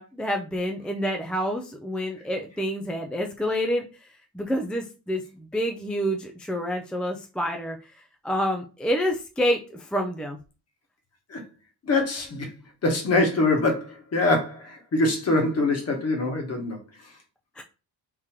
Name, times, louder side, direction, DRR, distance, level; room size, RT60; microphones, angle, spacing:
voice 1, 0.0-3.8 4.3-7.8 8.2-10.4 17.6-17.7, equal, 5° left, 0.3 m, -28 dB
voice 2, 11.8-12.5 12.8-16.8, left 2 dB, 35° left, 1.4 m, -24 dB
3.7 x 2.9 x 4.5 m
cardioid pair, 150°, 41 cm